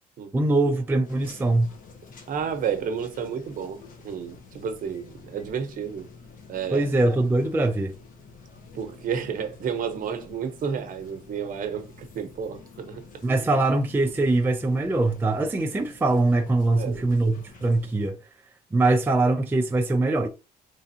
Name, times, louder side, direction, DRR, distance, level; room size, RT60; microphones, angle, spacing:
voice 1, 0.3-1.7 6.7-7.9 13.2-18.2 18.7-20.3, right 2 dB, 10° right, 0.4 m, -22 dB
sound 1, 1.0-18.1, left 4 dB, 50° left, 1.0 m, -48 dB
voice 2, 2.3-3.8 4.0-6.1 6.5-6.9 8.7-13.0 16.7-17.1, right 7 dB, 55° right, 0.9 m, -31 dB
3.7 x 3.4 x 2.8 m
cardioid pair, 110°, 17 cm